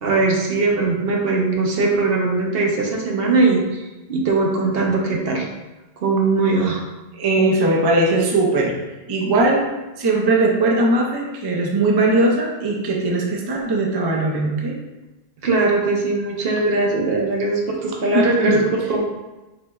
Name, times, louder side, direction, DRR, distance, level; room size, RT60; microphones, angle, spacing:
voice 1, 0.0-3.8 4.1-5.5 6.0-6.8 15.4-19.0, right 3 dB, 65° right, -1 dB, 0.9 m, -20 dB
voice 2, 7.1-8.7 9.1-9.7 10.0-14.8 18.1-18.7, right 2 dB, 40° right, -1 dB, 0.3 m, -19 dB
4.2 x 3.1 x 2.3 m, 1.1 s
omnidirectional pair, 1.1 m